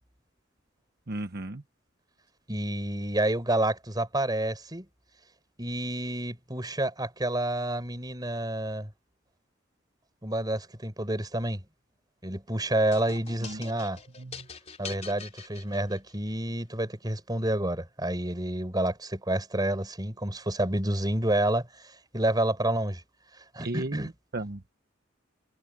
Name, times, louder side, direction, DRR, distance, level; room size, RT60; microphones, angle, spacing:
voice 1, 1.1-1.6 13.4-13.6 14.2-14.5 23.6-24.7, right 2 dB, 50° right, 1.1 m, -35 dB
voice 2, 2.5-4.9 5.6-8.9 10.2-11.6 12.2-14.0 14.8-23.0 23.5-24.1, right 1 dB, 20° right, 5.5 m, -29 dB
sound 1, 12.9-16.3, left 5 dB, 35° left, 3.9 m, -44 dB
head